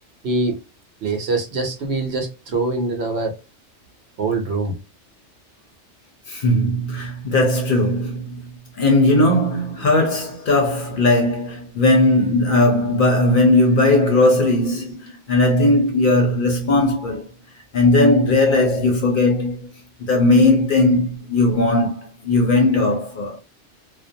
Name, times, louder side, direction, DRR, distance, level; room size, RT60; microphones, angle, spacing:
voice 1, 0.2-0.6 1.0-3.3 4.2-4.8, right 3 dB, 70° right, 0.9 m, -23 dB
voice 2, 6.3-8.5 8.8-17.2 17.7-19.7 20.0-23.4, left 2 dB, 55° left, 0.7 m, -18 dB
2.4 x 2.1 x 2.6 m
omnidirectional pair, 1.2 m